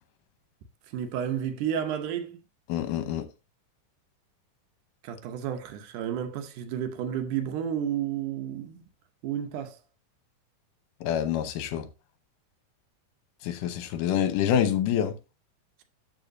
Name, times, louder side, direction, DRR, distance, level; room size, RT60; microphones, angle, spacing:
voice 1, 0.9-2.4 5.0-8.8 9.2-9.8, right 9 dB, 75° right, 2.3 m, -31 dB
voice 2, 2.7-3.3 11.0-11.9 13.4-15.1, left 9 dB, 80° left, 2.5 m, -26 dB
12.5 x 4.9 x 2.6 m
omnidirectional pair, 3.8 m